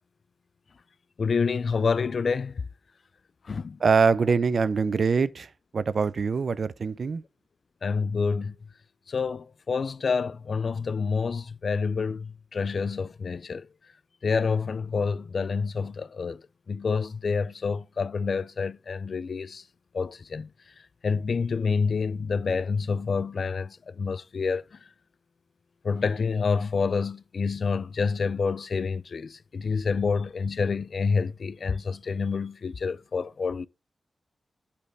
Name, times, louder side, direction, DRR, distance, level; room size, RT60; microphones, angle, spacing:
voice 1, 1.2-2.6 3.5-3.8 7.8-8.5 9.1-13.7 14.2-16.4 16.7-19.6 19.9-20.5 21.0-24.6 25.8-33.7, left 5 dB, 65° left, 0.3 m, -28 dB
voice 2, 3.8-7.2, right 5 dB, 65° right, 0.5 m, -24 dB
8.5 x 3.3 x 4.5 m
cardioid pair, 50°, 0 cm